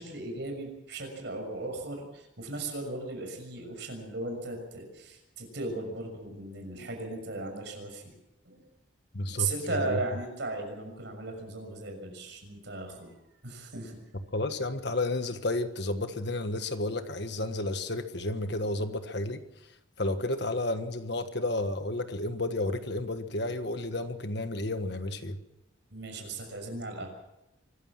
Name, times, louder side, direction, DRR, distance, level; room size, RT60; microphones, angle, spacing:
voice 1, 0.0-8.1 8.4-8.6 9.3-13.1 13.4-14.0 25.9-27.1, right 2 dB, 55° right, 3 dB, 6.4 m, -36 dB
voice 2, 9.1-10.0 14.3-19.4 20.0-25.4, left 2 dB, 55° left, 8 dB, 1.5 m, -31 dB
24.5 x 15.0 x 7.5 m, 0.91 s
head